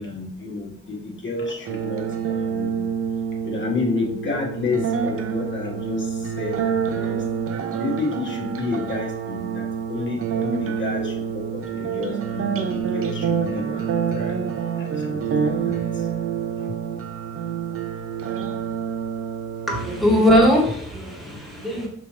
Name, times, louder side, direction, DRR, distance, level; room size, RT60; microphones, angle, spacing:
voice 1, 0.0-2.8 3.4-7.2 7.8-14.4 14.8-15.8, left 4 dB, 40° left, -1 dB, 1.4 m, -30 dB
sound 1, 1.6-20.6, right 7 dB, 50° right, 0.7 m, -27 dB
voice 2, 19.7-21.9, equal, ahead, -3 dB, 1.7 m, -19 dB
5.1 x 3.1 x 3.3 m, 0.65 s
cardioid pair, 90°, 30 cm